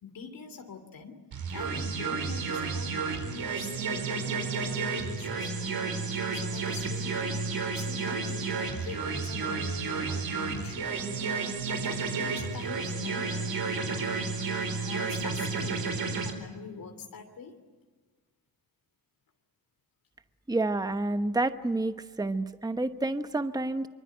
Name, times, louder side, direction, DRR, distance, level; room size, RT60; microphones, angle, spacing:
voice 1, 0.0-1.2 1.5-5.5 6.3-14.1 14.8-17.5, left 5 dB, 70° left, 5 dB, 3.0 m, -44 dB
sound 1, 1.3-16.3, right 4 dB, 75° right, 4.3 m, -31 dB
voice 2, 20.5-23.9, right 2 dB, 10° right, 10 dB, 1.0 m, -29 dB
25.0 x 24.5 x 9.3 m, 1.4 s
wide cardioid pair, 115°, 35 cm